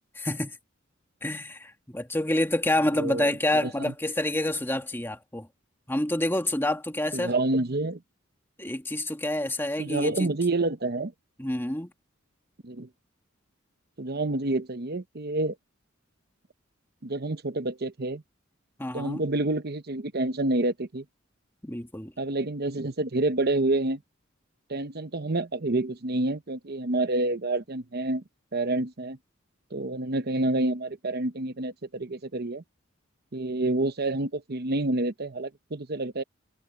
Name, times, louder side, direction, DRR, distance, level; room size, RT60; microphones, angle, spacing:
voice 1, 0.2-0.6 1.2-5.5 5.9-7.3 8.6-10.3 11.4-11.9 18.8-19.2 21.6-22.1, left 1 dB, 10° left, 2.0 m, -28 dB
voice 2, 2.9-3.9 7.1-8.0 9.8-11.1 12.6-12.9 14.0-15.6 17.0-18.2 18.9-21.0 22.2-24.0 24.7-28.2 28.5-29.2 29.7-32.6 33.3-36.2, right 2 dB, 50° right, 0.9 m, -28 dB
head